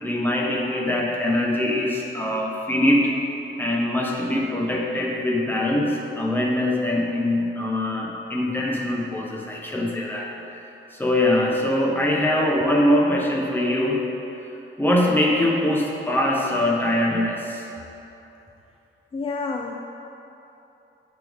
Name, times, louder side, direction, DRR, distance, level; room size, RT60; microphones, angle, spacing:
voice 1, 0.0-3.1 3.6-10.6 10.9-14.0 14.8-17.6, left 1 dB, 10° left, -2 dB, 1.0 m, -23 dB
voice 2, 19.1-19.7, left 4 dB, 25° left, 2 dB, 0.4 m, -28 dB
9.8 x 6.9 x 3.6 m, 3.0 s
wide cardioid pair, 170°, 21 cm